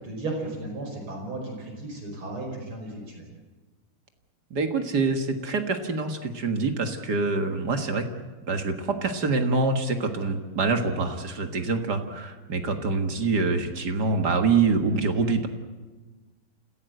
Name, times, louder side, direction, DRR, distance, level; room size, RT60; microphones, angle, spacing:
voice 1, 0.0-3.2, right 2 dB, 70° right, 1 dB, 6.2 m, -35 dB
voice 2, 4.5-8.0 8.5-15.5, right 4 dB, 50° right, 6 dB, 2.1 m, -25 dB
29.0 x 16.0 x 7.9 m, 1.3 s
omnidirectional pair, 2.4 m